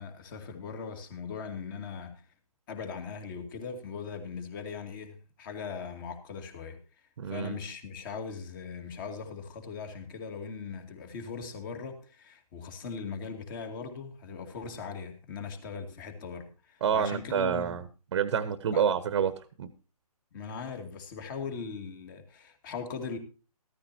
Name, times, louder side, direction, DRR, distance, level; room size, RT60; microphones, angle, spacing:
voice 1, 0.0-2.3 2.7-6.8 7.2-17.8 18.7-18.9 20.3-23.2, left 5 dB, 30° left, 2.2 m, -40 dB
voice 2, 7.2-7.5 16.8-17.8 18.1-19.3 19.6-19.7, right 8 dB, 45° right, 1.0 m, -28 dB
14.5 x 14.0 x 2.8 m
figure-of-eight pair, 145°, 20 cm